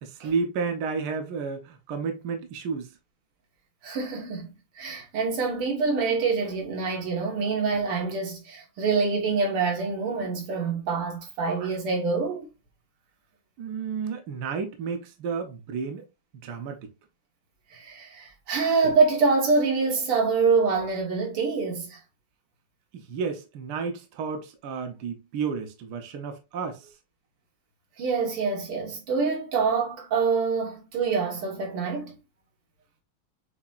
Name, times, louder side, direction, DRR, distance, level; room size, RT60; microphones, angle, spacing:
voice 1, 0.0-2.9 13.6-16.1 16.4-16.8 22.9-26.9, right 5 dB, 60° right, 1.2 m, -31 dB
voice 2, 3.8-4.5 4.8-12.5 17.7-22.0 28.0-32.2, right 4 dB, 85° right, 2.3 m, -25 dB
7.0 x 2.8 x 2.4 m
omnidirectional pair, 2.4 m